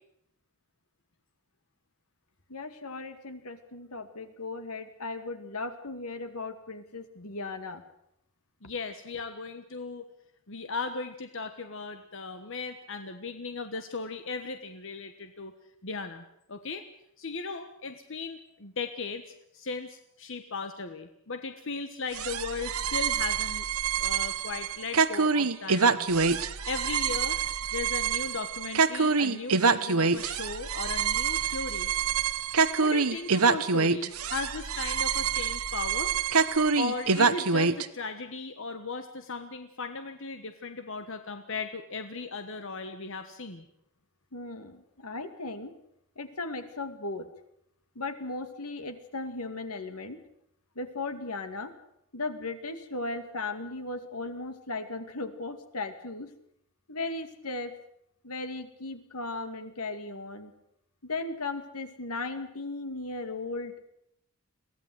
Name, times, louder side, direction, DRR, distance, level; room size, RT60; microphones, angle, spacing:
voice 1, 2.5-7.8 44.3-45.7 46.2-47.3 48.0-50.2 50.8-51.7 52.1-56.3 56.9-57.7 58.2-60.5 61.0-63.9, left 3 dB, 85° left, 9 dB, 2.3 m, -36 dB
voice 2, 8.6-10.0 10.5-15.5 15.8-16.2 16.5-16.9 17.2-23.6 24.0-26.1 26.6-27.4 27.7-31.9 32.8-36.1 36.8-43.7, left 4 dB, 60° left, 8 dB, 1.4 m, -37 dB
sound 1, 22.1-37.9, right 5 dB, 75° right, 1.1 m, -26 dB
22.5 x 16.5 x 8.0 m, 0.77 s
head